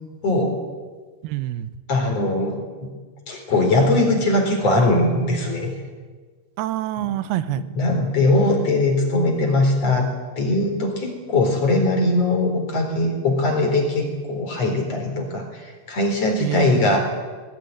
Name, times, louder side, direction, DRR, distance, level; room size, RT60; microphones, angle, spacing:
voice 1, 0.2-0.5 1.9-2.9 3.3-5.7 7.0-7.1 7.8-10.1 10.4-17.0, left 2 dB, 35° left, 2 dB, 4.8 m, -20 dB
voice 2, 1.2-1.7 6.6-7.6 16.4-17.0, right 14 dB, 80° right, 13 dB, 2.2 m, -26 dB
20.0 x 20.0 x 10.0 m, 1.5 s
omnidirectional pair, 5.5 m